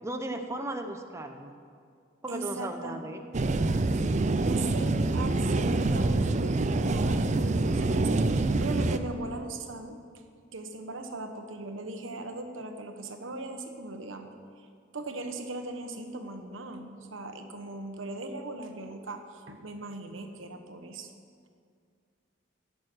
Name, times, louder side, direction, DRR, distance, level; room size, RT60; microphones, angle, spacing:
voice 1, 0.0-1.5 2.2-3.2, right 1 dB, 15° right, 5 dB, 0.8 m, -36 dB
voice 2, 2.3-3.0 4.4-10.0 10.5-14.7 14.9-21.1, right 2 dB, 85° right, 5 dB, 1.2 m, -39 dB
sound 1, 3.3-9.0, right 2 dB, 35° right, 0.5 m, -26 dB
16.5 x 6.8 x 6.2 m, 2.2 s
head